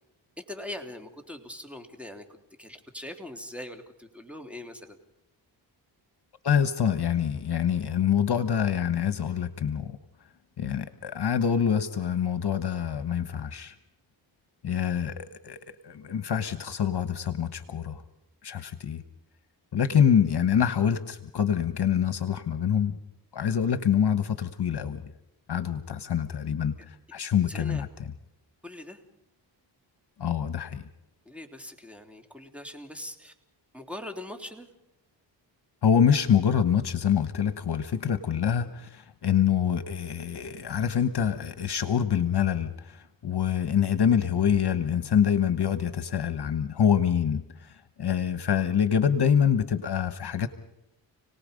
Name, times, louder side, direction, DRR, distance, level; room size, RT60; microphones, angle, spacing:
voice 1, 0.4-2.2 2.6-5.0 27.5-27.8 28.6-29.0 31.2-33.3 33.7-34.7, left 1 dB, 5° right, 4 dB, 3.4 m, -41 dB
voice 2, 6.4-10.0 10.6-13.7 14.6-15.6 15.8-18.0 18.4-19.0 19.7-23.0 23.3-25.1 25.5-27.9 30.2-30.8 35.8-50.5, left 8 dB, 55° left, 11 dB, 1.3 m, -25 dB
29.5 x 19.0 x 5.3 m, 0.86 s
cardioid pair, 55°, 47 cm